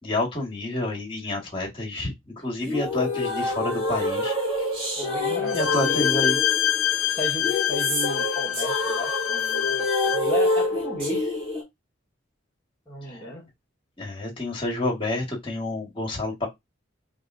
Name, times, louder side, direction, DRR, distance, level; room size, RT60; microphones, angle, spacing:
voice 1, 0.0-4.8 5.2-6.4 13.0-13.3 14.0-16.5, left 2 dB, 25° left, 1.5 m, -29 dB
sound 1, 2.6-11.6, left 2 dB, 25° right, 1.8 m, -27 dB
voice 2, 5.0-6.0 7.2-11.6 12.9-13.4, equal, 10° left, 1.2 m, -34 dB
Bowed string instrument, 5.5-10.3, left 11 dB, 85° left, 0.4 m, -26 dB
4.7 x 2.6 x 2.5 m
head